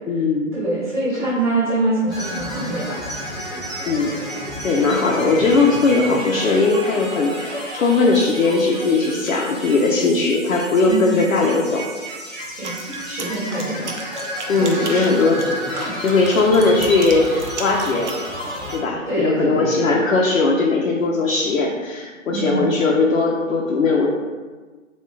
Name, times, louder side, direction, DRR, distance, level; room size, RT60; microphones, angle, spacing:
voice 1, 0.0-0.5 3.9-11.9 14.5-18.1 18.7-24.1, left 3 dB, 85° left, -2 dB, 0.6 m, -19 dB
voice 2, 0.5-3.0 10.9-11.2 12.6-12.8 13.0-13.9 14.5-15.1 15.7-15.9 19.1-19.9 22.3-22.8, right 2 dB, 40° right, -10 dB, 1.2 m, -24 dB
sound 1, 2.1-18.8, equal, 5° left, 1.0 m, -31 dB
sound 2, 12.4-18.2, right 4 dB, 60° right, 0.6 m, -35 dB
4.5 x 2.4 x 2.3 m, 1.4 s
hypercardioid pair, 170°, 39 cm